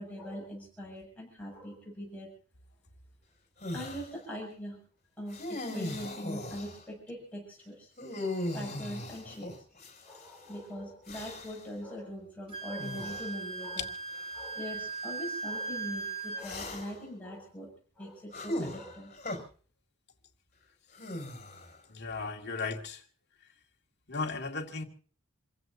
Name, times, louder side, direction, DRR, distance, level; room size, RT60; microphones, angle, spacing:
voice 1, 0.0-2.3 3.7-4.8 5.2-7.9 8.5-9.5 10.0-13.9 14.3-19.1, equal, 5° left, -4 dB, 7.3 m, -42 dB
sound 1, 3.6-4.1 5.3-6.8 8.0-10.3 11.1-11.7 12.8-13.3 14.1-14.3 16.4-17.1 18.3-19.4 20.9-21.8, left 1 dB, 35° left, 5.6 m, -38 dB
Wind instrument woodwind instrument, 12.5-16.4, right 3 dB, 30° right, 3.8 m, -38 dB
voice 2, 21.9-23.0 24.1-24.8, left 4 dB, 55° left, 2 dB, 2.2 m, -35 dB
28.5 x 15.5 x 2.7 m, 0.43 s
head